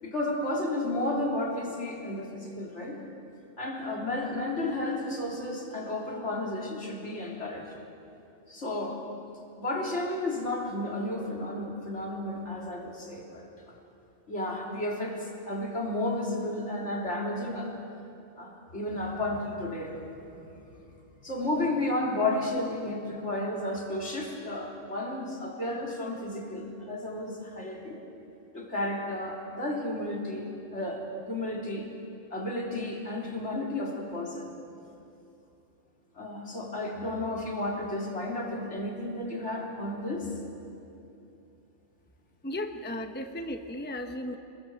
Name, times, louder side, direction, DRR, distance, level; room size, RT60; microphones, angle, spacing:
voice 1, 0.0-3.0 3.6-7.7 8.5-9.0 9.6-13.8 14.3-17.7 18.4-20.4 21.2-28.0 28.5-31.9 32.3-34.5 36.1-40.3, left 1 dB, 65° left, -1 dB, 4.0 m, -32 dB
voice 2, 42.4-44.4, left 1 dB, 10° left, 5 dB, 1.0 m, -35 dB
27.5 x 22.0 x 7.9 m, 2.7 s
omnidirectional pair, 1.3 m